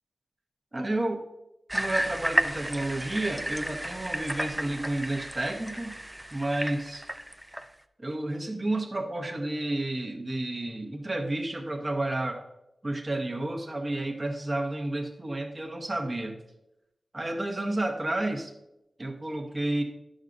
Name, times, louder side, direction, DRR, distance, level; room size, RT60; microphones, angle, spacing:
voice 1, 0.7-1.2 1.7-5.9 6.3-7.0 8.0-12.4 12.8-16.4 17.1-18.5 19.0-19.8, right 1 dB, 30° right, 2 dB, 0.9 m, -31 dB
sound 1, 1.7-7.7, right 1 dB, 10° right, 0.4 m, -32 dB
10.5 x 6.3 x 2.6 m, 0.88 s
wide cardioid pair, 75°, 0 cm